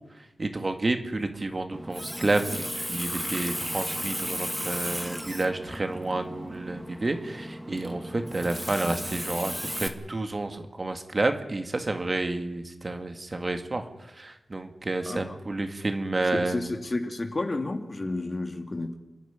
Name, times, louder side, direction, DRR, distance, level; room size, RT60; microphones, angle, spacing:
voice 1, 0.4-13.8 14.2-16.6, right 2 dB, 40° right, 6 dB, 2.2 m, -30 dB
Water tap faucet, 1.7-9.9, equal, ahead, 2.1 m, -34 dB
voice 2, 15.0-15.4 16.3-19.0, left 2 dB, 45° left, 5 dB, 2.4 m, -31 dB
27.5 x 11.0 x 9.5 m, 1.0 s
cardioid pair, 50°, 0 cm